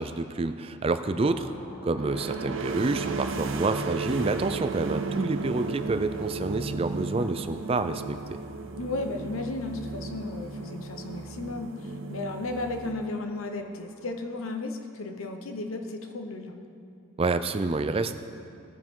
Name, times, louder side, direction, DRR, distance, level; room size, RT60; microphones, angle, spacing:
voice 1, 0.0-1.5 1.8-8.2 17.2-18.1, right 3 dB, 25° right, 10 dB, 0.3 m, -28 dB
sound 1, 0.8-14.7, equal, 40° left, 2.7 m, -51 dB
sound 2, 1.9-13.5, right 3 dB, 65° right, 0.6 m, -35 dB
voice 2, 8.8-16.6, left 2 dB, 75° left, 5 dB, 1.0 m, -34 dB
18.0 x 9.6 x 3.8 m, 2.6 s
head